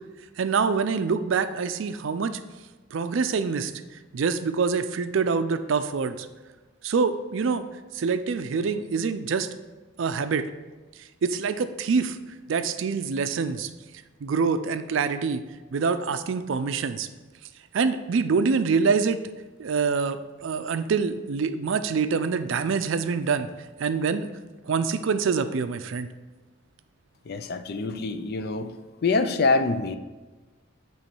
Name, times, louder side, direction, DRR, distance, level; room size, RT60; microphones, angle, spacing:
voice 1, 0.4-2.3 2.9-3.7 4.1-6.3 6.8-7.7 7.9-9.5 10.0-10.5 11.2-12.2 12.5-13.7 14.2-15.4 15.7-17.1 17.7-19.2 19.6-23.5 23.8-24.3 24.7-26.1, right 5 dB, 65° right, 11 dB, 0.4 m, -25 dB
voice 2, 27.3-28.7 29.0-30.0, left 3 dB, 50° left, 9 dB, 0.4 m, -25 dB
8.7 x 3.1 x 4.5 m, 1.3 s
head